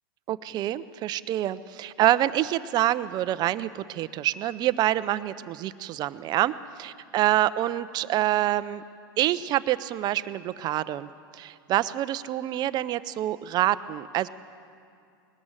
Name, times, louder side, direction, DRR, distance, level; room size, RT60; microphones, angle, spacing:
voice 1, 0.3-6.5 6.8-8.8 9.2-11.1 11.3-14.3, right 13 dB, 35° right, 15 dB, 0.6 m, -26 dB
20.5 x 14.0 x 9.0 m, 2.4 s
hypercardioid pair, 120°, 12 cm